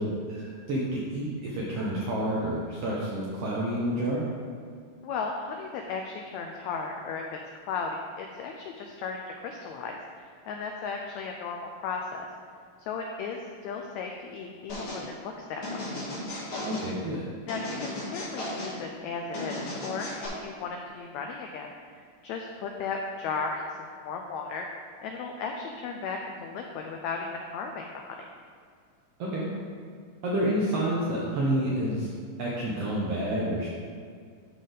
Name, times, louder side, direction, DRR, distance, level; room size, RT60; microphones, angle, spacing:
voice 1, 0.0-4.3 16.7-17.2 29.2-29.5 30.2-32.1 32.4-33.7, right 1 dB, 75° right, -4 dB, 1.4 m, -29 dB
voice 2, 5.0-7.2 7.7-12.3 12.9-15.9 17.5-21.7 21.9-23.6 24.0-24.6 25.0-28.2, left 5 dB, 85° left, 2 dB, 1.6 m, -35 dB
sound 1, 14.7-15.0 15.6-16.9 17.5-18.8 19.3-20.3, left 1 dB, 45° left, 2.3 m, -35 dB
12.0 x 4.1 x 3.8 m, 2.1 s
omnidirectional pair, 3.8 m